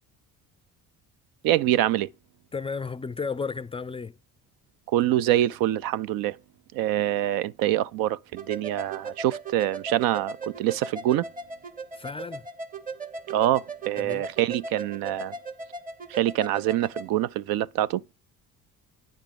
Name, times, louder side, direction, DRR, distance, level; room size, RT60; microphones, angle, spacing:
voice 1, 1.4-2.1 4.9-6.4 6.7-11.3 13.3-15.3 16.1-18.0, right 13 dB, 80° right, 0.6 m, -25 dB
voice 2, 2.5-4.2 11.9-12.5 14.0-14.3, left 5 dB, 15° left, 0.3 m, -33 dB
sound 1, 8.4-17.1, right 3 dB, 25° right, 1.2 m, -38 dB
9.4 x 3.5 x 6.8 m
cardioid pair, 90°, 35 cm